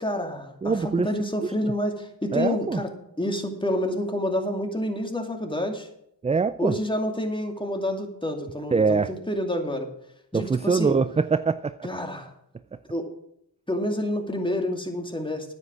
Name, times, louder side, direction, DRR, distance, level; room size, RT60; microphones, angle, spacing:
voice 1, 0.0-2.9 3.2-5.9 6.6-9.9 10.3-11.0 11.8-12.3 12.9-13.1 13.7-15.5, left 1 dB, 10° left, 3 dB, 2.5 m, -28 dB
voice 2, 0.6-1.1 1.4-1.7 2.3-2.8 6.2-6.7 8.7-9.1 10.3-11.9 12.7-12.8, right 5 dB, 15° right, 14 dB, 0.3 m, -24 dB
9.4 x 8.4 x 6.2 m, 0.74 s
cardioid pair, 40°, 46 cm